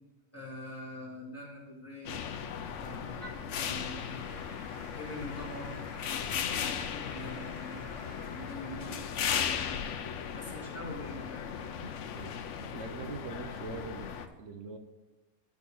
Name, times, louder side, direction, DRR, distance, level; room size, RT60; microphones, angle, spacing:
voice 1, 0.3-2.1 2.8-4.2 5.0-5.9 6.7-9.0 10.3-11.9, left 1 dB, 10° left, -5 dB, 2.4 m, -44 dB
sound 1, 2.1-14.3, left 8 dB, 85° left, 1.0 m, -37 dB
Applause / Keyboard (musical), 3.2-12.5, left 2 dB, 55° left, 1.7 m, -52 dB
voice 2, 12.6-14.1 14.4-14.8, right 4 dB, 80° right, 5 dB, 1.1 m, -42 dB
11.0 x 4.1 x 6.2 m, 1.2 s
omnidirectional pair, 1.2 m